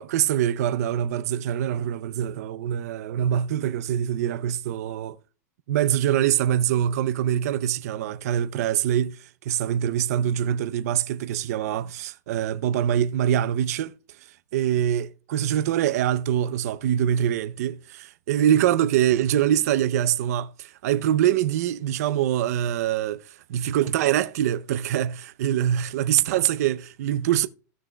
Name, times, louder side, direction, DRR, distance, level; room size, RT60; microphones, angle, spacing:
voice 1, 0.0-5.2 5.7-13.9 14.5-27.5, right 10 dB, 60° right, 0.6 m, -24 dB
16.0 x 6.1 x 2.2 m
supercardioid pair, 165°, 9 cm